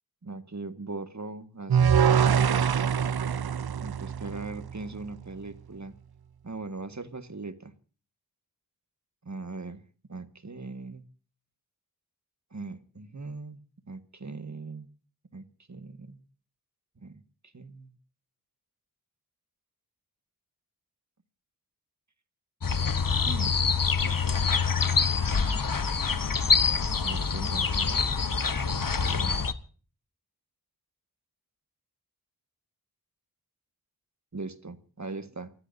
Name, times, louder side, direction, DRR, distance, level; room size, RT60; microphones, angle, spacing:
voice 1, 0.2-2.0 3.8-5.9 6.4-7.7 9.2-9.8 10.1-11.1 12.5-14.9 15.3-16.2 17.0-17.2 17.5-18.0 23.2-23.6 24.0-24.6 24.9-25.0 25.3-25.6 27.0-28.1 29.0-29.5 34.3-35.5, right 3 dB, 50° right, 10 dB, 1.7 m, -40 dB
sound 1, 1.7-4.9, right 7 dB, 80° right, 0.6 m, -24 dB
sound 2, 22.6-29.5, left 5 dB, 60° left, 1.1 m, -25 dB
29.0 x 15.5 x 2.7 m, 0.40 s
wide cardioid pair, 40°, 37 cm